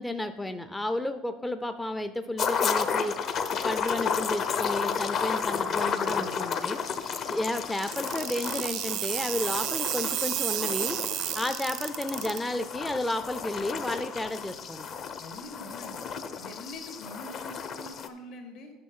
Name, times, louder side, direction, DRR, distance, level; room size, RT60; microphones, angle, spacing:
voice 1, 0.0-3.2 3.6-6.8 7.2-11.0 11.3-14.8, left 1 dB, 5° left, 9 dB, 0.4 m, -32 dB
sound 1, 2.4-18.1, left 6 dB, 40° left, 0.7 m, -32 dB
voice 2, 5.5-6.5 15.2-16.0 16.4-18.7, left 1 dB, 70° left, 3 dB, 2.4 m, -44 dB
sound 2, 7.8-12.4, right 14 dB, 60° right, 0.4 m, -31 dB
9.5 x 6.3 x 5.4 m, 1.3 s
cardioid pair, 150°, 0 cm